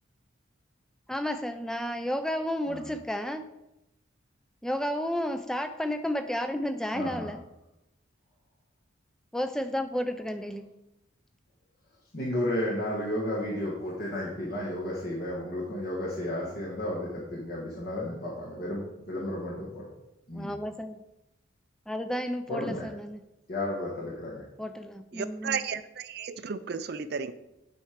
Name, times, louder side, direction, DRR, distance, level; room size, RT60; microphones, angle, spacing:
voice 1, 1.1-3.5 4.6-7.4 9.3-10.7 20.3-21.0 21.9-23.2 24.6-25.6, equal, 5° left, 9 dB, 0.4 m, -32 dB
voice 2, 6.9-7.3 12.1-19.9 20.3-20.5 22.5-22.9 23.5-24.4, left 1 dB, 50° left, -5 dB, 1.4 m, -33 dB
voice 3, 25.1-27.3, right 6 dB, 55° right, 12 dB, 0.4 m, -33 dB
8.6 x 4.4 x 5.0 m, 0.91 s
head